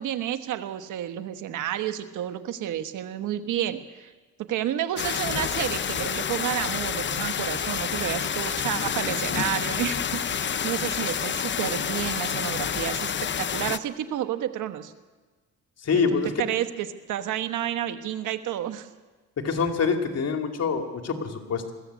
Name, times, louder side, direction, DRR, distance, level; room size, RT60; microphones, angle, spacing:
voice 1, 0.0-4.1 4.4-13.1 13.4-14.9 15.9-18.9, right 11 dB, 80° right, 9 dB, 1.4 m, -30 dB
sound 1, 5.0-13.8, left 8 dB, 40° left, 0.7 m, -28 dB
voice 2, 15.8-16.3 19.4-21.7, left 5 dB, 55° left, 4 dB, 2.8 m, -25 dB
21.0 x 15.5 x 8.4 m, 1.3 s
cardioid pair, 90°, 30 cm